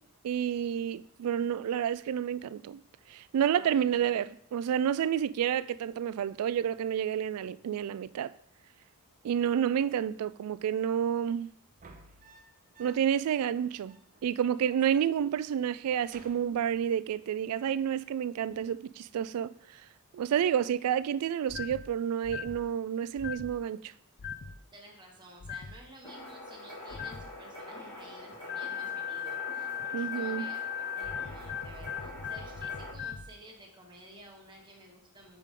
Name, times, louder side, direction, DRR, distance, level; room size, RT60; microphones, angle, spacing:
voice 1, 0.2-2.8 3.1-8.3 9.2-11.5 12.8-14.0 14.2-19.8 20.1-23.9 29.9-30.6, right 9 dB, 75° right, 0.3 m, -30 dB
voice 2, 3.4-4.1 24.7-35.4, right 1 dB, 20° right, 1.5 m, -53 dB
sound 1, 11.7-13.3 13.6-13.7 13.8-14.8 15.1-15.5 15.8-17.2 18.5-18.9, right 3 dB, 35° right, 0.7 m, -57 dB
sound 2, 21.5-21.8 22.2-22.6 23.2-23.5 24.2-24.6 25.4-25.8 26.9-27.3 28.5-33.3, left 8 dB, 45° left, 0.5 m, -38 dB
sound 3, 26.0-32.9, left 2 dB, 25° left, 3.1 m, -45 dB
7.4 x 5.1 x 3.7 m
head